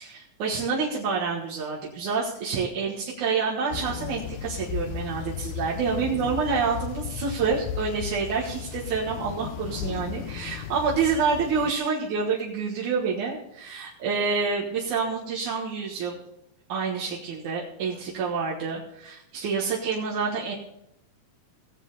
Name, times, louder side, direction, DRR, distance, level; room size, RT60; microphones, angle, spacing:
voice 1, 0.0-16.2 16.7-20.6, right 5 dB, 80° right, -5 dB, 3.0 m, -28 dB
sound 1, 3.7-11.7, left 11 dB, 80° left, 2.1 m, -35 dB
18.0 x 7.5 x 4.1 m, 0.80 s
omnidirectional pair, 3.5 m